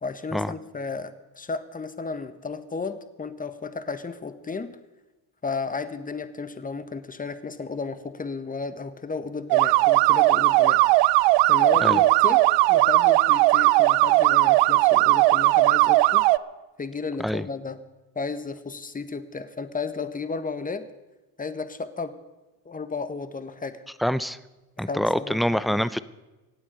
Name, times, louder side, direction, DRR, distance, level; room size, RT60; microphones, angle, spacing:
voice 1, 0.0-4.8 5.4-10.8 11.4-16.3 16.8-17.8 18.1-20.9 21.4-22.2 22.6-23.8 24.9-25.8, left 4 dB, 20° left, 11 dB, 1.2 m, -33 dB
sound 1, 9.5-16.4, right 19 dB, 75° right, 0.6 m, -18 dB
voice 2, 24.0-24.4 24.8-26.0, equal, ahead, 15 dB, 0.5 m, -25 dB
24.5 x 8.8 x 5.4 m, 1.1 s
supercardioid pair, 90°, 43 cm